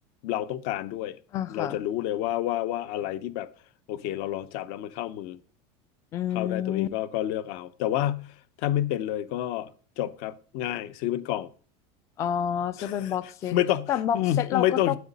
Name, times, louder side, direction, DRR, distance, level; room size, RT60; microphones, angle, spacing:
voice 1, 0.2-1.2 1.5-3.5 3.9-5.4 6.3-8.3 8.6-9.7 10.0-11.5 12.8-13.1 13.5-15.0, left 12 dB, 55° left, 0.7 m, -29 dB
voice 2, 1.3-1.8 6.1-6.9 12.2-13.6 13.9-15.0, left 9 dB, 20° left, 0.3 m, -28 dB
9.3 x 8.3 x 4.1 m
cardioid pair, 170°, 14 cm